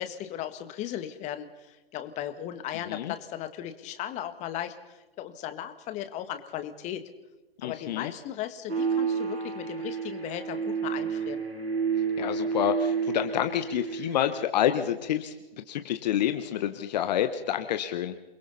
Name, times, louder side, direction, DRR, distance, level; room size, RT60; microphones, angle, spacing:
voice 1, 0.0-7.0 7.6-11.4, left 11 dB, 25° left, 9 dB, 1.7 m, -37 dB
voice 2, 7.6-8.1 12.2-18.1, left 11 dB, 45° left, 8 dB, 1.3 m, -28 dB
sound 1, 8.7-14.5, right 6 dB, 90° right, 3.5 m, -30 dB
28.5 x 22.0 x 4.2 m, 1.1 s
figure-of-eight pair, 125°, 30 cm